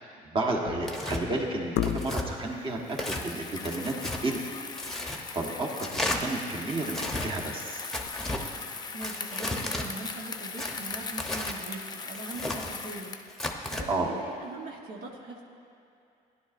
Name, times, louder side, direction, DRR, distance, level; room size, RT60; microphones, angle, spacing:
voice 1, 0.2-3.9 4.2-4.4 4.9-7.8 13.9-14.1, right 2 dB, 30° right, 0 dB, 1.3 m, -32 dB
sound 1, 0.6-1.1 1.7-2.4 4.8-5.1 5.3-5.4 5.9-6.2 6.7-7.6 8.1-8.2, left 10 dB, 75° left, 0.4 m, -34 dB
Tearing, 0.8-1.2 1.8-2.3 2.9-3.2 3.6-4.2 4.8-5.2 5.8-6.2 6.9-7.3 7.9-8.4 9.0-9.9 10.6-11.6 12.1-12.7 13.3-13.8, left 1 dB, ahead, 0.9 m, -33 dB
Bicycle, 2.8-13.3, left 5 dB, 25° left, 0.5 m, -39 dB
voice 2, 8.9-15.4, right 3 dB, 70° right, -1 dB, 1.1 m, -41 dB
15.0 x 10.5 x 2.5 m, 2.6 s
cardioid pair, 110°, 17 cm